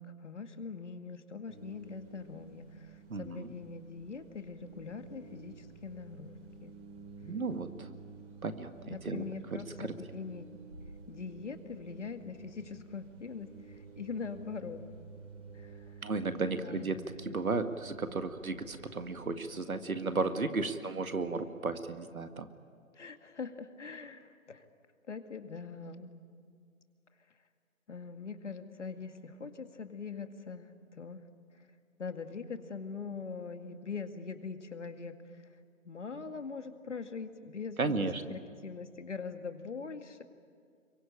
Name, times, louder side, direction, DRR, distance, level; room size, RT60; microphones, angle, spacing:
voice 1, 0.0-6.8 8.9-10.6 11.1-14.8 15.5-16.0 16.6-16.9 22.9-24.6 25.1-26.1 27.9-31.2 32.0-35.4 35.8-40.2, left 5 dB, 55° left, 7 dB, 2.1 m, -42 dB
sound 1, 1.5-19.4, right 4 dB, 55° right, 5.7 m, -52 dB
voice 2, 3.1-3.5 7.2-7.9 8.4-9.2 9.8-9.9 16.0-22.5 37.8-38.2, right 3 dB, 80° right, 8 dB, 2.1 m, -34 dB
26.0 x 23.5 x 8.8 m, 2.2 s
figure-of-eight pair, 165°, 42 cm